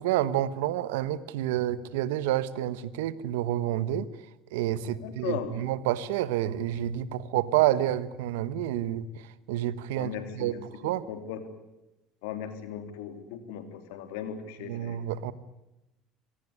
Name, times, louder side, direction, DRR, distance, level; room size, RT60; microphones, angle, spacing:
voice 1, 0.0-4.1 4.5-10.6 10.8-11.1 14.7-15.3, right 12 dB, 85° right, 16 dB, 1.2 m, -29 dB
voice 2, 4.9-5.5 10.0-11.4 12.2-15.1, left 9 dB, 80° left, 8 dB, 3.4 m, -38 dB
25.0 x 18.0 x 9.9 m, 0.93 s
supercardioid pair, 80°, 0 cm